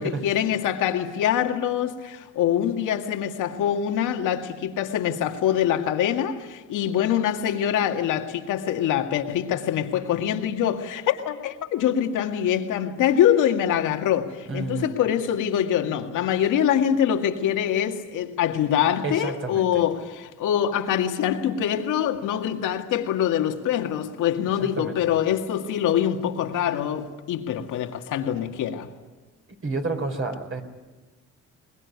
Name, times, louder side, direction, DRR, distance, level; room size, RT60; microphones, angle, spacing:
voice 1, 0.0-28.9, left 10 dB, 90° left, 2.1 m, -24 dB
voice 2, 14.5-14.9 19.0-19.8 24.6-25.0 29.6-30.6, right 3 dB, 45° right, 4.5 m, -30 dB
22.5 x 21.0 x 9.6 m
cardioid pair, 90°, 30 cm